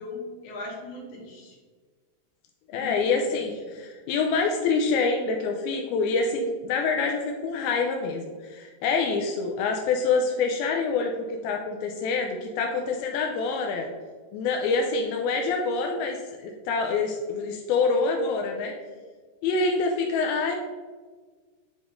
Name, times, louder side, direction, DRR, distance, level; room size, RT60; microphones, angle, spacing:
voice 1, 0.0-1.6 2.7-3.2, left 3 dB, 60° left, -3 dB, 2.4 m, -39 dB
voice 2, 2.7-13.9 14.3-18.7 19.4-20.6, left 4 dB, 85° left, 2 dB, 2.2 m, -26 dB
9.6 x 4.9 x 2.5 m, 1.5 s
omnidirectional pair, 4.8 m